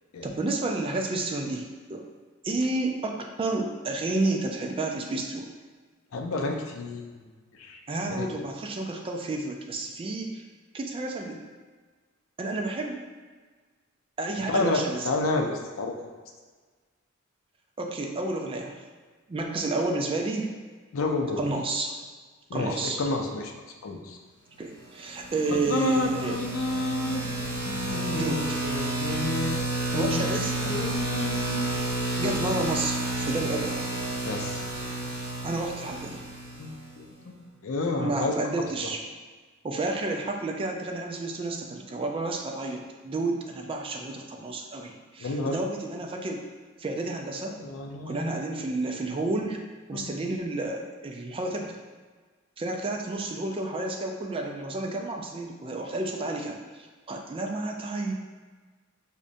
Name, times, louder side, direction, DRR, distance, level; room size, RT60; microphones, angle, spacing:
voice 1, 0.2-2.0 2.4-5.5 7.9-10.4 10.7-11.5 12.4-13.1 14.2-15.1 17.8-18.8 19.3-20.5 21.4-21.9 22.5-23.0 24.6-26.4 28.1-28.6 29.9-30.9 32.2-33.8 35.4-36.2 38.0-39.0 39.6-46.4 46.8-47.6 48.1-49.6 49.9-51.8 52.6-58.1, right 2 dB, 25° right, 2 dB, 0.3 m, -31 dB
voice 2, 6.1-7.3 7.6-7.8 8.1-8.3 14.5-16.1 20.9-21.4 22.5-23.5 23.8-24.2 25.5-27.3 27.6-29.6 29.9-31.7 32.2-32.5 34.2-34.6 36.6-37.3 37.6-38.3 45.2-45.6 47.6-48.4 49.9-50.1, left 2 dB, 70° left, 3 dB, 0.4 m, -30 dB
sound 1, 25.1-36.9, right 2 dB, 55° right, 1.0 m, -31 dB
5.0 x 2.2 x 2.6 m, 1.4 s
head